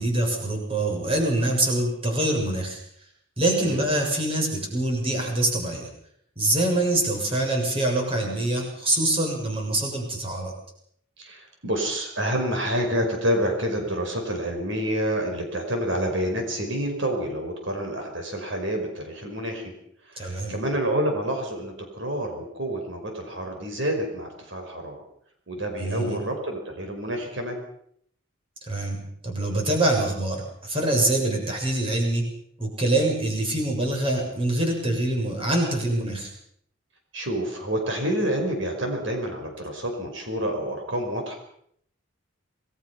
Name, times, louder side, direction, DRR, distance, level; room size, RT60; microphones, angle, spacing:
voice 1, 0.0-2.8 3.4-5.9 6.4-10.5 20.2-20.6 25.8-26.2 28.7-32.2 32.6-36.3, right 1 dB, 25° right, 1 dB, 7.2 m, -25 dB
voice 2, 11.2-19.7 20.1-25.0 25.5-27.6 37.1-41.3, equal, 65° right, 3 dB, 5.1 m, -28 dB
28.0 x 20.5 x 5.8 m, 0.67 s
head